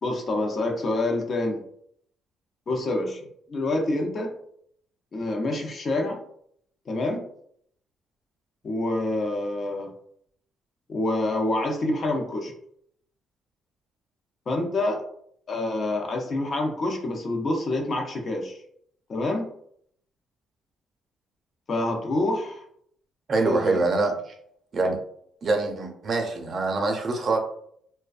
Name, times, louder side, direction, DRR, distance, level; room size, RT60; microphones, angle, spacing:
voice 1, 0.0-1.6 2.7-3.2 3.5-4.3 5.1-6.2 6.9-7.3 8.6-9.9 10.9-12.5 14.5-15.0 15.5-18.6 19.1-19.5 21.7-22.6 23.4-23.8, left 2 dB, 50° left, 2 dB, 0.6 m, -27 dB
voice 2, 23.3-24.3 24.7-25.0 25.4-27.4, right 3 dB, 50° right, 2 dB, 0.5 m, -24 dB
2.5 x 2.1 x 2.4 m, 0.67 s
cardioid pair, 90°, 0 cm